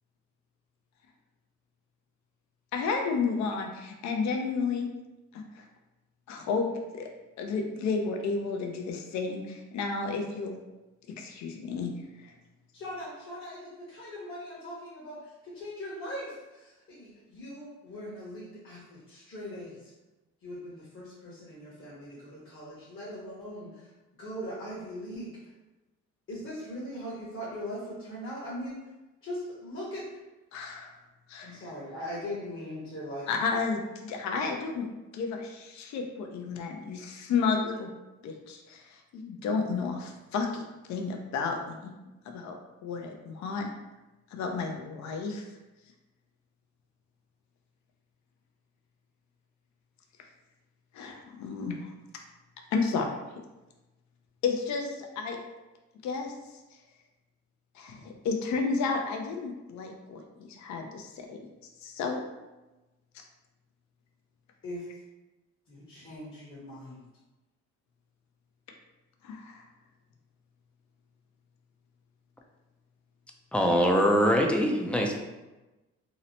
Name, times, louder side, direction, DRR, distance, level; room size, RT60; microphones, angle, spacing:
voice 1, 2.7-4.9 5.3-5.7 6.3-6.7 6.9-7.1 7.4-10.5 11.1-11.9 12.2-12.3 30.5-30.9 31.3-31.6 33.3-34.9 35.1-37.9 38.2-41.9 42.3-42.5 42.8-43.7 44.3-45.5 50.9-51.9 52.7-53.1 54.4-55.4 56.0-56.3 57.7-61.4 61.8-62.2 63.1-63.2 69.2-69.7, left 4 dB, 70° left, 3 dB, 0.5 m, -32 dB
voice 2, 12.7-19.9 20.4-23.9 24.2-25.3 26.3-28.8 29.2-30.2 31.4-33.3 64.6-64.9 65.7-67.0, equal, 45° left, -8 dB, 0.9 m, -40 dB
voice 3, 73.5-75.1, equal, 5° left, 1 dB, 0.3 m, -23 dB
2.8 x 2.0 x 2.7 m, 1.1 s
cardioid pair, 90°, 30 cm